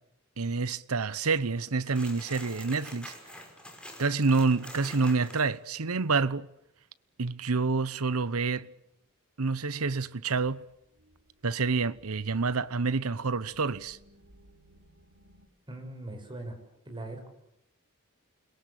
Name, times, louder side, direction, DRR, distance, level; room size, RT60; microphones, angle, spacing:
voice 1, 0.4-3.1 4.0-6.5 7.2-8.7 9.4-10.6 11.4-14.0, right 4 dB, 80° right, 1.0 m, -28 dB
sound 1, 1.8-5.5, left 1 dB, 5° left, 5.7 m, -46 dB
sound 2, 10.6-15.5, equal, 65° right, 4.5 m, -60 dB
voice 2, 15.7-16.6 16.9-17.3, right 2 dB, 20° right, 6.1 m, -40 dB
29.5 x 22.0 x 8.4 m
head